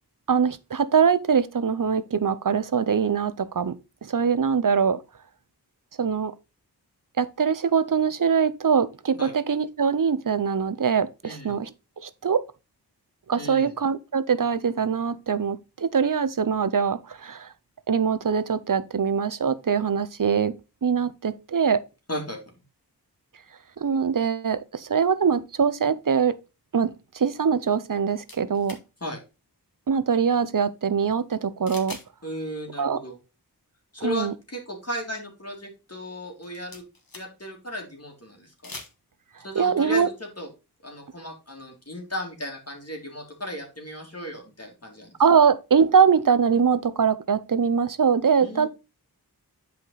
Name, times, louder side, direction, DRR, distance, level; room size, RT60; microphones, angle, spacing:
voice 1, 0.3-3.7 4.0-5.0 6.0-6.3 7.2-11.7 12.0-12.4 13.3-17.5 17.9-20.5 20.8-21.8 23.8-26.4 26.7-28.8 29.9-32.0 32.8-33.0 34.0-34.3 39.5-40.1 45.2-48.7, right 6 dB, 55° right, 0.7 m, -23 dB
voice 2, 11.2-11.6 13.4-13.7 22.1-22.4 29.0-29.2 32.2-33.2 33.9-36.8 37.1-38.7 39.4-40.5 40.8-45.1 48.4-48.7, left 1 dB, 40° left, 2.7 m, -35 dB
sound 1, 28.3-28.8 31.7-32.1 32.4-32.5 36.3-37.5 38.5-38.9, left 3 dB, 60° left, 1.9 m, -42 dB
8.1 x 5.0 x 3.9 m
wide cardioid pair, 40°, 40 cm